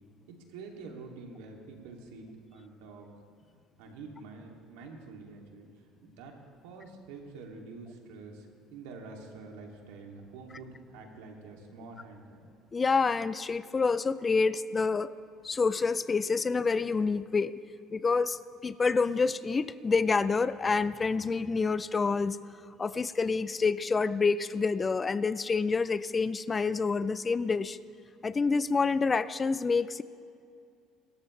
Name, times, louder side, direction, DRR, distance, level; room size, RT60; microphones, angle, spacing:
voice 1, 0.3-3.1 3.8-5.7 6.0-6.3 6.6-12.5, right 3 dB, 90° right, 1 dB, 2.6 m, -47 dB
voice 2, 12.7-15.1 15.4-17.6 17.9-22.4 22.8-27.8 28.2-30.0, left 4 dB, 25° left, 15 dB, 0.4 m, -27 dB
26.0 x 14.0 x 3.3 m, 2.4 s
supercardioid pair, 105°, 0 cm